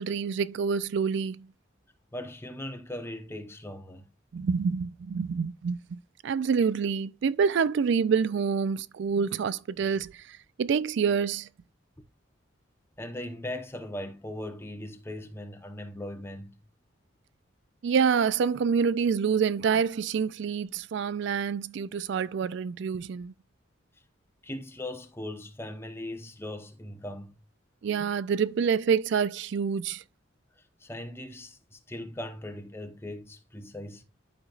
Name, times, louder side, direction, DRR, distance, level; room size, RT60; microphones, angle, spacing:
voice 1, 0.0-1.5 4.3-11.5 17.8-23.3 27.8-30.0, right 6 dB, 65° right, 0.3 m, -27 dB
voice 2, 2.1-4.1 13.0-16.6 24.4-27.5 30.6-34.0, left 1 dB, 10° left, 0.9 m, -39 dB
12.0 x 5.1 x 2.4 m
head